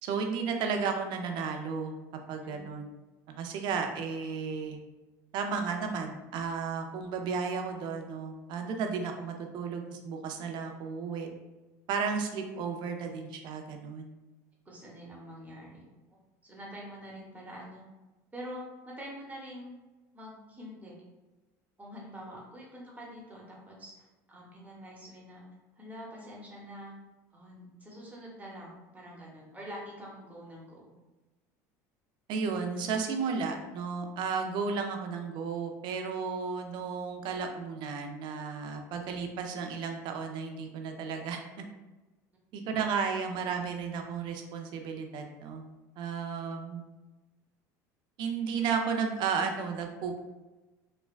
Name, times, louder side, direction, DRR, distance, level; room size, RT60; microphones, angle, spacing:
voice 1, 0.0-2.0 2.3-2.9 3.3-4.8 5.3-11.3 11.9-14.1 32.3-41.4 42.5-45.6 46.0-46.8 48.2-50.2, right 5 dB, 60° right, 4 dB, 0.4 m, -33 dB
voice 2, 2.4-2.7 14.6-15.8 16.4-17.8 18.3-19.8 20.1-21.0 21.8-25.4 25.8-26.9 27.3-30.9, equal, 15° right, -3 dB, 0.9 m, -45 dB
3.3 x 2.1 x 2.4 m, 1.1 s
supercardioid pair, 95°, 9 cm